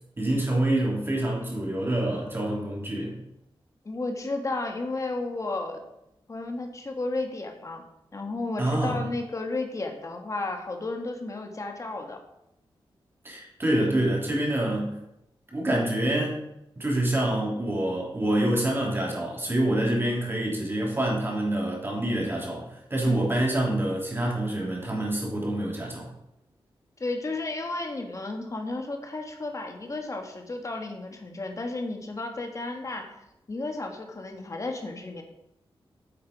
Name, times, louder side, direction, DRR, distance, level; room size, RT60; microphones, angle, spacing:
voice 1, 0.2-3.2 8.6-9.0 13.2-15.0 15.5-16.4 16.8-26.1, right 1 dB, 25° right, -2 dB, 2.9 m, -26 dB
voice 2, 3.8-5.8 6.3-7.8 8.1-12.2 23.1-23.2 27.0-35.2, left 2 dB, 35° left, 3 dB, 1.5 m, -33 dB
8.8 x 7.4 x 5.1 m, 0.84 s
wide cardioid pair, 145°, 9 cm